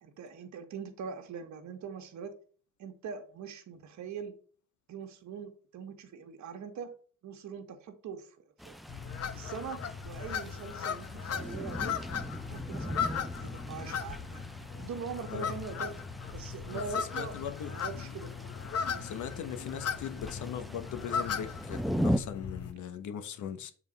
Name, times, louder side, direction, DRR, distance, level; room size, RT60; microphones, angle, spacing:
voice 1, 0.0-2.3 2.8-4.3 4.9-6.9 7.2-8.8 9.3-11.9 12.5-14.5 14.8-15.9 16.3-18.3 18.9-19.1, right 6 dB, 70° right, 1.6 m, -42 dB
sound 1, 8.6-22.2, equal, ahead, 0.6 m, -39 dB
sound 2, 8.9-22.7, left 7 dB, 55° left, 1.0 m, -37 dB
voice 2, 16.7-17.7 19.0-23.7, left 8 dB, 75° left, 1.2 m, -39 dB
7.4 x 4.0 x 5.3 m
cardioid pair, 90°, 30 cm